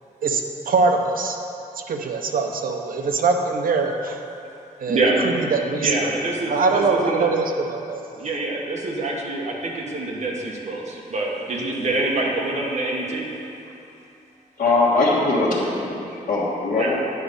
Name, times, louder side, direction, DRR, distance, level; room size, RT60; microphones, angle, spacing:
voice 1, 0.2-1.4 1.9-4.2 4.8-6.1 6.5-8.0, right 4 dB, 70° right, 4 dB, 0.8 m, -23 dB
voice 2, 5.8-7.3 8.2-13.2 16.8-16.9, right 2 dB, 50° right, -2 dB, 1.4 m, -25 dB
voice 3, 14.6-17.0, left 3 dB, 60° left, -8 dB, 1.4 m, -21 dB
9.3 x 5.0 x 6.6 m, 2.9 s
wide cardioid pair, 175°, 15 cm